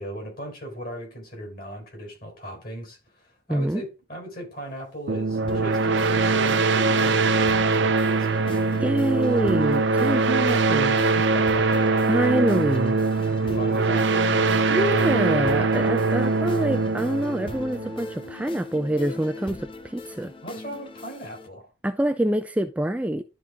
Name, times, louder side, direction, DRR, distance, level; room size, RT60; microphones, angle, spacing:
voice 1, 0.0-8.4 10.9-12.0 13.0-15.4 20.4-21.7, right 1 dB, 50° left, 4.3 m, -38 dB
voice 2, 3.5-3.8 8.8-11.0 12.1-13.0 14.7-20.3 21.8-23.2, right 1 dB, 5° right, 0.3 m, -25 dB
sound 1, 5.1-18.4, right 4 dB, 75° right, 0.7 m, -22 dB
sound 2, 5.5-21.5, left 3 dB, 30° left, 0.7 m, -38 dB
12.0 x 4.1 x 3.6 m
head